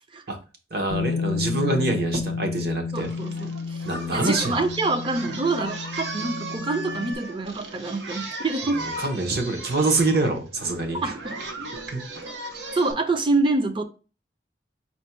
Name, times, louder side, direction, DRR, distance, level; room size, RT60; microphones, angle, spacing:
voice 1, 0.7-3.1 3.8-4.5 8.7-11.1 11.9-12.0, right 2 dB, 60° right, 0.9 m, -25 dB
Bass guitar, 0.9-7.2, left 4 dB, 85° left, 0.5 m, -31 dB
voice 2, 2.9-3.8 4.1-8.8 11.0-11.4 12.8-13.8, right 3 dB, 30° right, 0.5 m, -26 dB
Singing, 3.0-12.9, right 2 dB, 90° right, 0.8 m, -37 dB
4.3 x 2.2 x 4.3 m
head